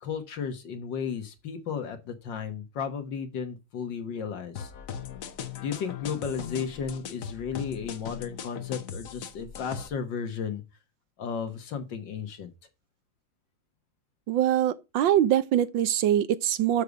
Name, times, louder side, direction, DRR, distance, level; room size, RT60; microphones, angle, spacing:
voice 1, 0.0-4.7 5.6-10.6 11.2-12.5, left 6 dB, 70° left, 1.9 m, -34 dB
sound 1, 4.6-9.9, left 8 dB, 55° left, 1.1 m, -39 dB
voice 2, 14.3-16.8, right 11 dB, 80° right, 1.5 m, -23 dB
6.8 x 6.5 x 4.7 m
omnidirectional pair, 2.1 m